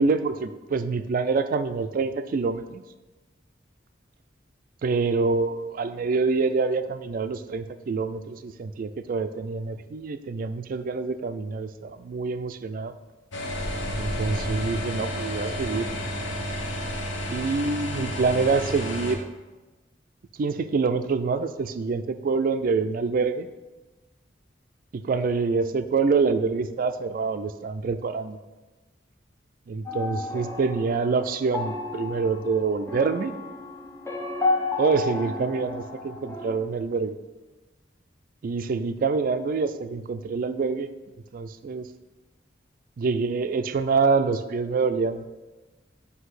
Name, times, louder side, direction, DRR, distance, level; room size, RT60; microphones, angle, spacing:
voice 1, 0.0-2.8 4.8-12.9 14.0-15.9 17.3-19.3 20.4-23.5 24.9-28.4 29.7-33.3 34.8-37.1 38.4-40.9 41.3-41.9 43.0-45.3, right 4 dB, 50° right, 11 dB, 0.3 m, -26 dB
sound 1, 13.3-19.2, equal, 85° left, 0.8 m, -31 dB
sound 2, 29.9-36.6, left 3 dB, 15° left, 0.6 m, -32 dB
7.9 x 2.7 x 4.8 m, 1.2 s
head